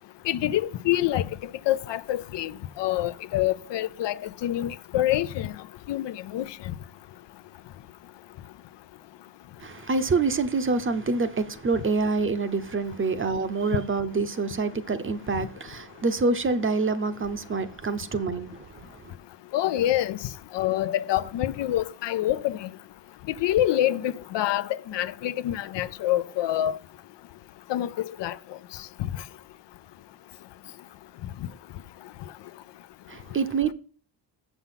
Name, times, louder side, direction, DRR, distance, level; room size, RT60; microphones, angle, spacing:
voice 1, 0.2-1.4 1.7-5.5 5.9-6.6 19.5-20.2 20.5-22.7 23.4-26.8 27.7-28.4 29.0-29.1, left 13 dB, 75° left, 0.7 m, -26 dB
voice 2, 9.6-19.1 33.1-33.7, right 4 dB, 30° right, 0.8 m, -26 dB
7.1 x 7.0 x 5.7 m
cardioid pair, 130°, 43 cm